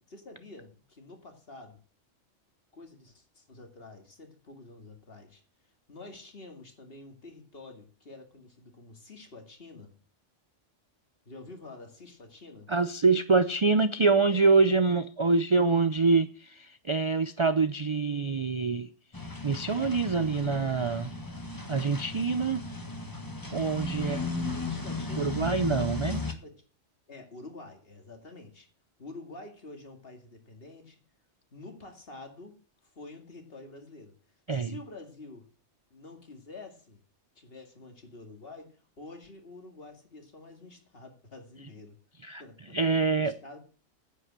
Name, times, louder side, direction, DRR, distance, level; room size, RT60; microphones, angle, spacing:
voice 1, 0.0-1.8 2.7-5.4 5.9-10.0 11.3-12.7 24.0-26.6 27.1-28.7 29.0-31.0 31.5-32.6 32.8-34.1 34.5-35.5 35.9-37.0 37.4-42.0 42.4-42.8 43.2-43.6, left 2 dB, 50° left, 2.4 m, -48 dB
voice 2, 12.7-18.9 19.4-21.1 21.7-22.6 23.5-24.2 25.2-26.2 34.5-34.7 42.2-42.4 42.7-43.3, right 4 dB, 45° right, 0.4 m, -25 dB
sound 1, 19.1-26.3, left 3 dB, 15° left, 1.5 m, -36 dB
9.7 x 8.5 x 7.5 m
omnidirectional pair, 1.3 m